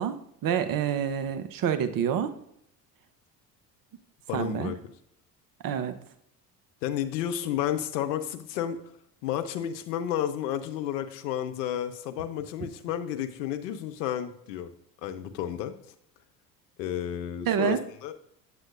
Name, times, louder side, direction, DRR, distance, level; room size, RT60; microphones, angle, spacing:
voice 1, 0.0-2.3 4.3-4.7 5.6-6.0 17.5-17.8, right 8 dB, 40° right, 9 dB, 0.9 m, -27 dB
voice 2, 4.3-4.8 6.8-8.9 9.2-14.7 15.0-15.7 16.8-18.1, left 10 dB, 75° left, 8 dB, 0.8 m, -31 dB
8.2 x 7.7 x 2.5 m, 0.74 s
hypercardioid pair, 60°, 50 cm